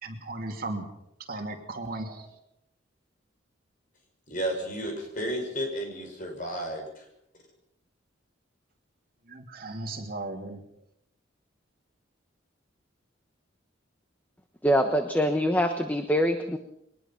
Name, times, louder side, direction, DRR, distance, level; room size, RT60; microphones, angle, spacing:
voice 1, 0.0-0.9 1.3-2.3 9.3-10.6, right 2 dB, 50° right, 3 dB, 2.8 m, -36 dB
voice 2, 4.3-7.1, right 1 dB, 40° left, 3 dB, 6.2 m, -32 dB
voice 3, 14.6-16.6, equal, 10° left, 6 dB, 1.2 m, -24 dB
22.5 x 20.0 x 5.8 m, 0.79 s
head